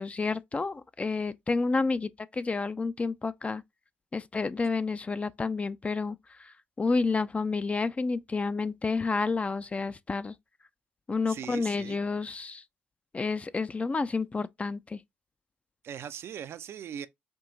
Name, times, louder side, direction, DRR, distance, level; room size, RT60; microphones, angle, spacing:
voice 1, 0.0-3.6 4.1-10.4 11.1-12.6 13.1-15.0, left 4 dB, 25° left, 0.3 m, -30 dB
voice 2, 11.3-12.0 15.8-17.1, right 8 dB, 55° right, 0.4 m, -39 dB
4.5 x 2.6 x 2.5 m
hypercardioid pair, 50°, 5 cm